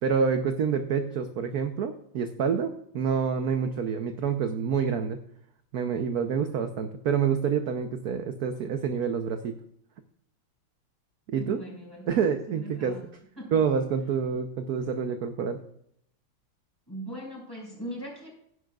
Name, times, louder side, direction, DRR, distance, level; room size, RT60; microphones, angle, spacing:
voice 1, 0.0-5.2 5.7-9.5 11.3-11.6 12.1-13.0 13.5-15.6, right 6 dB, 60° right, 7 dB, 1.0 m, -27 dB
voice 2, 11.3-12.2 12.5-13.1 13.4-13.7 16.9-18.3, equal, 10° left, -2 dB, 5.5 m, -40 dB
16.0 x 11.0 x 2.4 m, 0.69 s
omnidirectional pair, 2.3 m